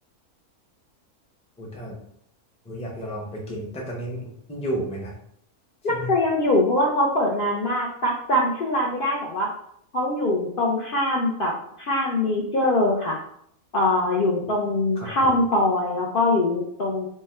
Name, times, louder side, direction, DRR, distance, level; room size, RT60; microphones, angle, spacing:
voice 1, 1.6-2.0 2.6-5.1 5.9-6.1 15.0-15.3, right 1 dB, 10° left, -2 dB, 0.4 m, -32 dB
voice 2, 5.8-9.5 9.9-11.5 11.8-13.2 13.7-17.1, left 1 dB, 65° left, -3 dB, 0.5 m, -23 dB
3.5 x 2.1 x 4.2 m, 0.70 s
omnidirectional pair, 1.6 m